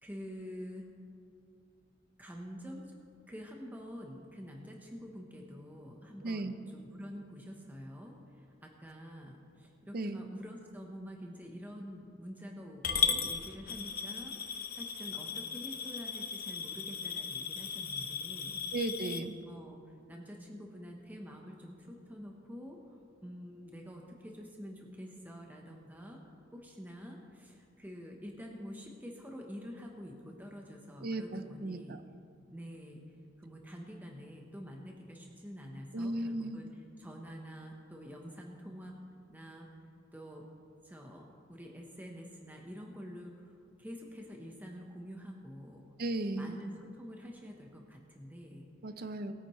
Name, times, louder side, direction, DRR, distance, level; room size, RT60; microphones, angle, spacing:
voice 1, 0.0-0.9 2.2-2.9 3.3-18.6 19.5-19.8 20.1-26.2 26.5-32.0 32.5-33.0 33.4-38.9 39.3-39.7 40.1-40.4 40.8-43.5 43.8-45.8 46.3-48.7, equal, 10° right, 0 dB, 0.9 m, -47 dB
voice 2, 6.2-6.5 9.9-10.2 18.7-19.3 31.0-32.0 35.9-36.7 46.0-46.6 48.8-49.3, right 2 dB, 50° right, 10 dB, 0.7 m, -35 dB
Coin (dropping) / Glass, 12.8-19.2, left 6 dB, 55° left, 0.9 m, -36 dB
20.0 x 9.3 x 3.1 m, 2.4 s
head